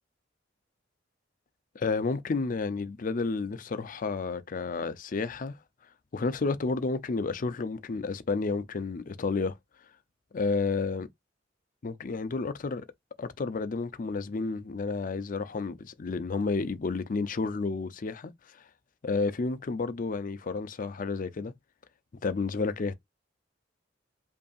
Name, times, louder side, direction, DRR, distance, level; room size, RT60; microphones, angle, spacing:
voice 1, 1.7-5.6 6.1-9.6 10.3-11.1 11.8-12.9 13.2-18.6 19.0-21.5 22.2-22.9, left 4 dB, 45° left, 0.5 m, -31 dB
5.2 x 2.6 x 2.3 m
head